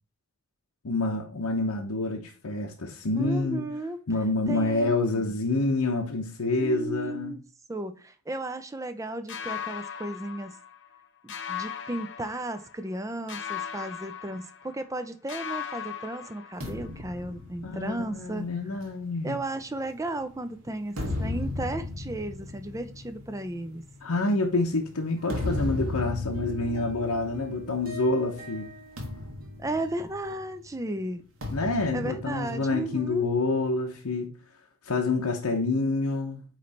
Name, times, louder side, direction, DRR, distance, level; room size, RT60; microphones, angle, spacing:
voice 1, 0.8-3.7 4.1-7.3 17.6-19.4 24.0-28.7 31.5-34.4 34.8-36.4, left 2 dB, 90° left, 0.9 m, -27 dB
voice 2, 3.1-4.0 4.5-5.3 6.5-7.4 7.7-10.6 11.2-18.4 19.2-23.8 29.6-31.2 31.9-33.3, right 2 dB, 15° right, 0.5 m, -34 dB
sound 1, 9.3-11.0 11.3-12.9 13.3-15.0 15.3-17.0, left 9 dB, 55° left, 0.8 m, -38 dB
sound 2, 16.6-20.2 20.7-28.1 28.4-28.6 29.0-30.6 31.4-33.2, left 2 dB, 70° right, 1.8 m, -36 dB
sound 3, 21.5-22.0 22.9-23.2 24.0-24.1 24.6-24.8 25.2-25.8 26.1-30.4, right 2 dB, 40° right, 1.5 m, -44 dB
8.3 x 3.3 x 4.2 m
head